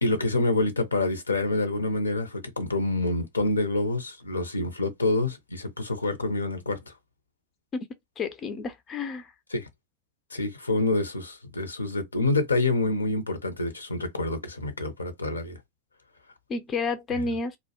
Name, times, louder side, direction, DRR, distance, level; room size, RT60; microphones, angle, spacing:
voice 1, 0.0-6.9 9.5-9.7 10.3-15.6 17.1-17.2, left 2 dB, 80° left, 0.5 m, -27 dB
voice 2, 8.2-9.3 16.5-17.6, left 4 dB, 25° left, 0.4 m, -30 dB
2.2 x 2.0 x 2.9 m
figure-of-eight pair, 90°, 0 cm